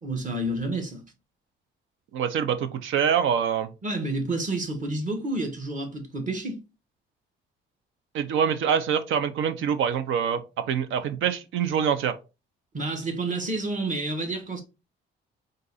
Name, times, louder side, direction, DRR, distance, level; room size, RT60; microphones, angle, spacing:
voice 1, 0.0-1.0 3.8-6.6 12.7-14.6, right 2 dB, 40° right, 1.5 m, -29 dB
voice 2, 2.1-3.7 8.1-12.1, right 8 dB, 80° right, 0.7 m, -25 dB
3.9 x 2.6 x 4.0 m
cardioid pair, 90°, 20 cm